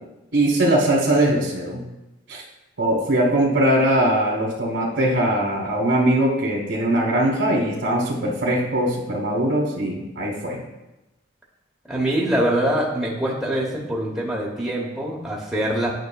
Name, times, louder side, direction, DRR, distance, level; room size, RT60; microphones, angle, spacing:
voice 1, 0.3-1.8 2.3-2.4 2.8-10.6, right 1 dB, 85° right, -3 dB, 1.2 m, -21 dB
voice 2, 11.9-15.9, right 1 dB, ahead, -4 dB, 0.8 m, -24 dB
9.2 x 6.0 x 2.3 m, 1.0 s
head